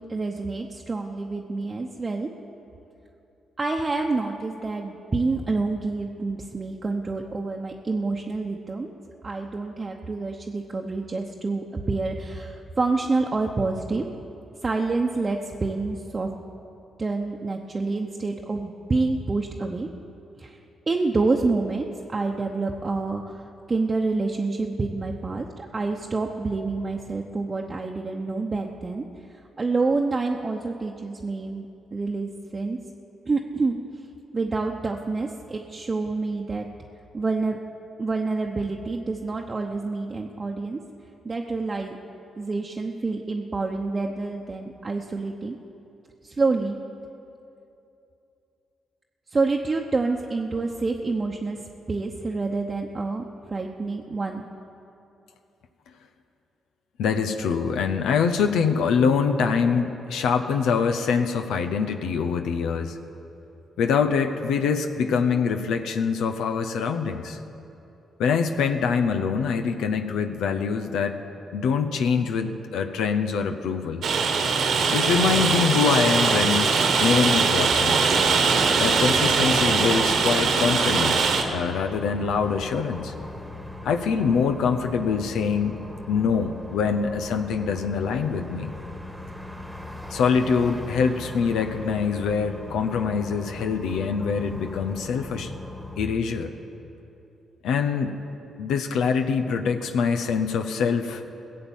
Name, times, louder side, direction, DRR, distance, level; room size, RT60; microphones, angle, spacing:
voice 1, 0.0-2.3 3.6-8.9 9.2-14.1 14.6-16.3 17.0-19.9 20.4-20.6 20.9-29.0 29.6-31.7 31.9-32.8 33.3-33.8 34.3-36.7 37.1-37.6 38.0-40.8 41.2-42.0 42.4-45.6 46.2-46.8 49.3-51.6 51.9-54.4, right 3 dB, 35° right, 0 dB, 0.9 m, -27 dB
voice 2, 57.0-63.0 63.8-67.4 68.2-71.2 71.5-74.1 74.9-78.0 78.8-83.1 83.8-85.8 86.1-88.7 90.1-95.5 96.0-96.5 97.6-98.2 98.6-101.2, left 6 dB, 80° left, 6 dB, 0.7 m, -24 dB
Rain, 74.0-81.4, right 5 dB, 70° right, 1.3 m, -21 dB
sound 1, 77.7-96.0, left 2 dB, 5° right, 1.5 m, -39 dB
16.5 x 7.7 x 7.2 m, 2.8 s
supercardioid pair, 55°, 0 cm